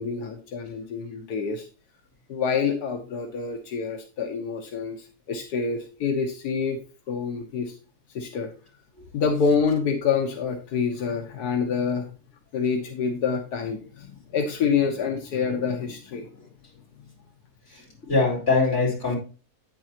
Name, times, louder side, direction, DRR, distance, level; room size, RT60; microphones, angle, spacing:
voice 1, 0.0-1.7 2.3-6.8 7.1-7.7 8.1-8.5 9.1-12.1 12.5-16.3, left 5 dB, 85° left, 3 dB, 1.6 m, -27 dB
voice 2, 17.7-19.2, left 3 dB, 45° left, -3 dB, 4.3 m, -23 dB
8.8 x 8.6 x 2.9 m, 0.35 s
omnidirectional pair, 1.6 m